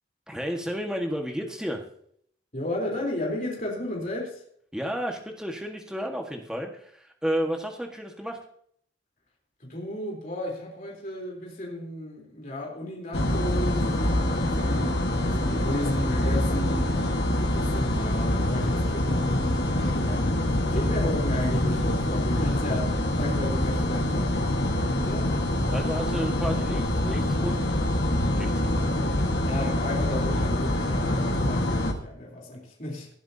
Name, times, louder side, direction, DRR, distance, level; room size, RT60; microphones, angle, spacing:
voice 1, 0.3-1.8 4.7-8.4 25.7-27.6 28.3-28.9, equal, 5° right, 2 dB, 1.5 m, -32 dB
voice 2, 2.5-4.4 9.6-13.9 14.1-16.9 17.5-20.4 20.7-25.3 29.4-33.1, left 1 dB, 45° left, -2 dB, 3.6 m, -33 dB
sound 1, 13.1-31.9, left 1 dB, 60° left, 1.6 m, -25 dB
19.5 x 10.5 x 2.8 m, 0.64 s
head